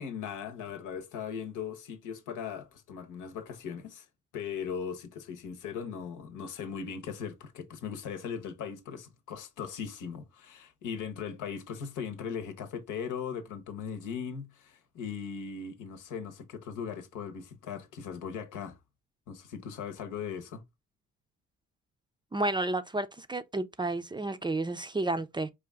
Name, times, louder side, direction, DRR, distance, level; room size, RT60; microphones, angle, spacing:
voice 1, 0.0-4.1 4.3-18.8 19.3-20.6, left 7 dB, 85° left, 1.0 m, -39 dB
voice 2, 22.3-25.5, right 2 dB, 15° right, 0.4 m, -31 dB
4.9 x 2.5 x 3.4 m
cardioid pair, 90°, 30 cm